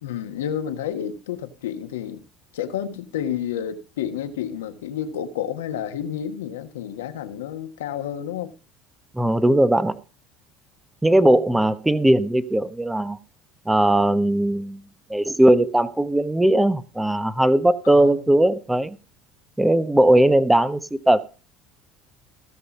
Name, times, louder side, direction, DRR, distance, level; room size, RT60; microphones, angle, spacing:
voice 1, 0.0-2.2 2.5-8.5 17.8-18.3, left 9 dB, 85° left, 1.4 m, -30 dB
voice 2, 9.1-10.0 11.0-13.2 13.7-14.8 15.1-19.0 19.6-21.2, right 1 dB, 10° right, 0.9 m, -19 dB
16.5 x 5.6 x 5.4 m
hypercardioid pair, 80°, 0 cm